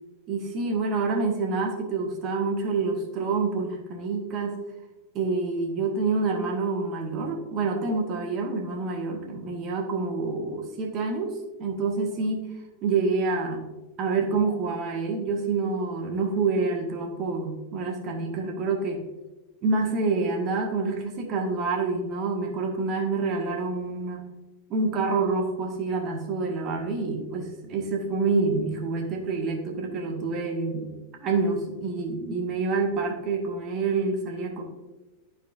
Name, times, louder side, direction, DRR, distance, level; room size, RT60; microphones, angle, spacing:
voice 1, 0.3-4.6 5.1-12.5 12.8-13.6 14.0-19.1 19.6-24.3 24.7-30.9 31.2-34.6, right 4 dB, 35° right, 1 dB, 1.5 m, -27 dB
12.5 x 4.4 x 2.5 m, 1.1 s
figure-of-eight pair, 90°, 0 cm